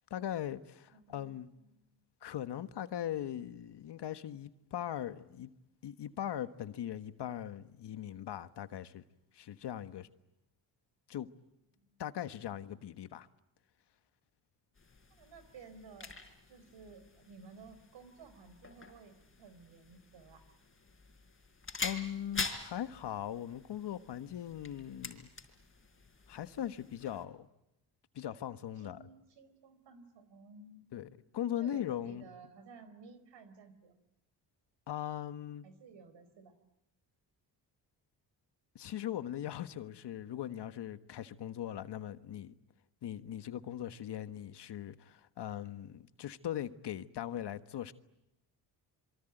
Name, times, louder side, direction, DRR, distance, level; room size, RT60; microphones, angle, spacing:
voice 1, 0.1-1.5 2.2-5.5 5.8-9.0 9.3-10.1 11.1-11.3 12.0-13.3 21.8-25.3 26.3-27.5 28.1-29.0 30.9-32.2 34.9-35.6 38.7-42.6 43.0-47.9, left 11 dB, 65° left, 1.5 m, -40 dB
voice 2, 0.9-2.0 11.7-12.0 15.1-16.2 16.5-20.4 28.8-30.9 31.6-34.0 35.6-36.5, right 4 dB, 75° right, 4.7 m, -55 dB
sound 1, 14.7-27.2, left 4 dB, 30° left, 4.5 m, -46 dB
27.5 x 24.0 x 9.1 m
cardioid pair, 85°, 44 cm